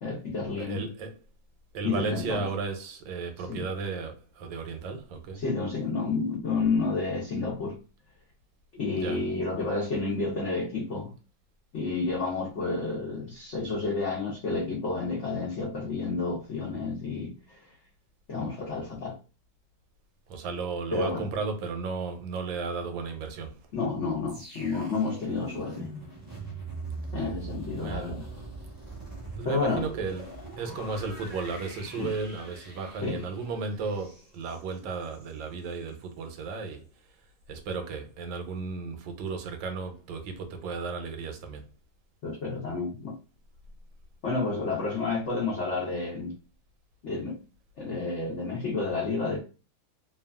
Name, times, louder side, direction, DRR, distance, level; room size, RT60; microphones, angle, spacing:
voice 1, 0.0-0.8 1.8-2.4 3.5-3.6 5.3-7.8 8.7-11.1 11.7-17.8 18.3-19.2 20.9-21.3 23.7-25.9 27.1-28.3 29.4-29.9 32.0-32.1 33.0-33.2 42.2-43.2 44.2-46.3 47.0-47.4 47.8-49.4, left 3 dB, 75° left, 0.6 m, -30 dB
voice 2, 0.5-1.1 1.7-5.4 8.9-9.2 20.3-23.6 27.8-28.1 29.4-36.8 37.5-41.6, right 4 dB, 80° right, 1.3 m, -34 dB
sound 1, 24.3-35.4 35.7-35.9, right 3 dB, 30° right, 0.4 m, -42 dB
3.0 x 2.3 x 2.3 m
omnidirectional pair, 2.1 m